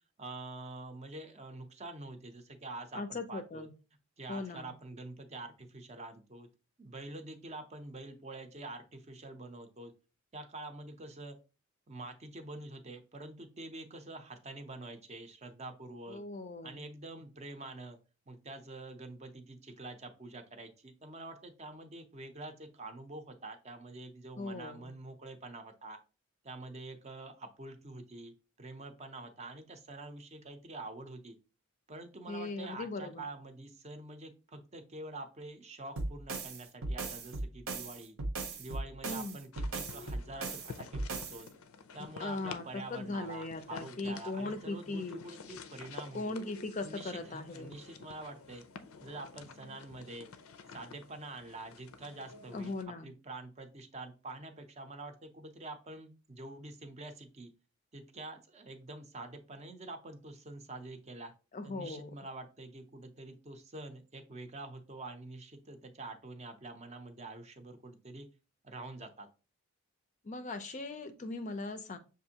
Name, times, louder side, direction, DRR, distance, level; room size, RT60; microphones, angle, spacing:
voice 1, 0.2-3.7 4.2-6.5 6.8-9.9 10.3-11.4 11.9-16.2 16.6-18.0 18.3-26.0 26.4-31.3 31.9-38.2 38.6-41.5 41.9-46.4 46.8-48.7 49.0-50.3 50.7-57.5 57.9-61.3 61.6-68.3 68.6-69.3, right 2 dB, 30° right, 6 dB, 0.6 m, -46 dB
voice 2, 2.9-3.7 4.3-4.7 16.1-16.8 24.4-24.9 32.3-33.2 39.0-39.4 42.0-45.2 46.1-47.7 52.5-53.1 61.5-62.1 70.2-72.0, left 3 dB, 35° left, 9 dB, 0.4 m, -39 dB
sound 1, 36.0-41.4, right 3 dB, 75° right, 0.8 m, -38 dB
sound 2, 39.5-52.8, left 5 dB, 90° left, 0.5 m, -50 dB
6.4 x 2.5 x 2.8 m, 0.33 s
head